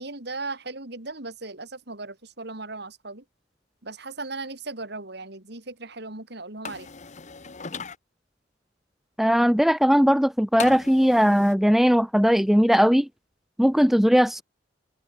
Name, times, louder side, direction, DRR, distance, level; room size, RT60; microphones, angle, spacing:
voice 1, 0.0-3.2 3.8-6.9, right 3 dB, 60° right, 4.0 m, -37 dB
sound 1, 6.6-8.0 10.6-11.5, left 5 dB, 40° left, 1.1 m, -37 dB
voice 2, 9.2-13.1 13.6-14.4, equal, ahead, 0.6 m, -19 dB
head